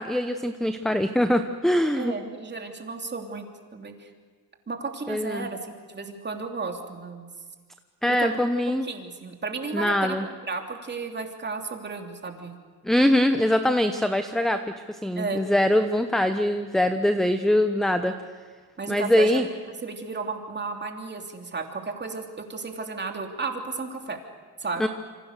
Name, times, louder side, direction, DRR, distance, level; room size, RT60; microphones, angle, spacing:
voice 1, 0.0-2.1 5.1-5.5 8.0-8.9 9.7-10.2 12.8-14.6 15.0-18.1 18.9-19.5 24.8-24.9, left 1 dB, ahead, 8 dB, 0.9 m, -23 dB
voice 2, 1.9-4.1 4.7-7.3 8.1-10.2 10.5-12.6 15.1-15.4 18.8-19.4 19.7-24.2 24.6-24.9, right 4 dB, 25° right, 3 dB, 3.1 m, -33 dB
27.5 x 25.5 x 6.7 m, 1.5 s
cardioid pair, 115°, 42 cm